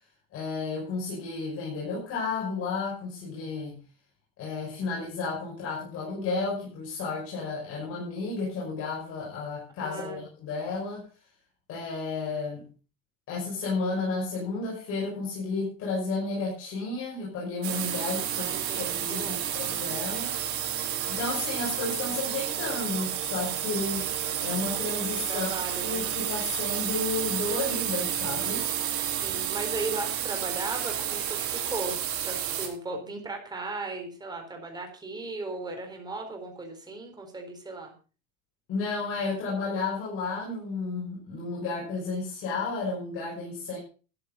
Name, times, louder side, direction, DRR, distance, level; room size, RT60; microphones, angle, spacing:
voice 1, 0.3-3.8 4.4-11.1 11.7-12.6 13.3-20.3 20.6-20.8 21.1-24.1 24.4-25.5 25.8-28.7 38.7-43.8, left 3 dB, 40° left, -4 dB, 6.3 m, -32 dB
voice 2, 9.8-10.2 18.4-19.5 25.1-26.0 29.1-32.0 32.2-37.9, right 3 dB, 10° right, 3 dB, 4.3 m, -37 dB
sound 1, 17.6-32.7, right 10 dB, 40° right, 3.8 m, -31 dB
13.5 x 9.7 x 5.4 m, 0.36 s
cardioid pair, 150°, 33 cm